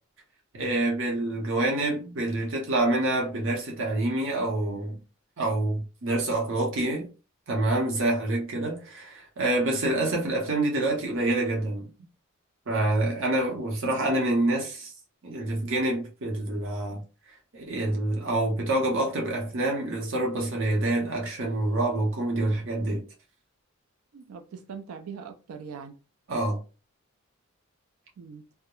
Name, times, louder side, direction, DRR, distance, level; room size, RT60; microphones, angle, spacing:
voice 1, 0.5-5.0 5.4-7.1 7.5-11.9 12.7-14.9 15.2-17.0 17.5-23.0 26.3-26.6, right 2 dB, 65° right, 0.8 m, -27 dB
voice 2, 24.1-26.0 28.2-28.4, right 6 dB, 85° right, 0.4 m, -41 dB
2.3 x 2.0 x 2.9 m
head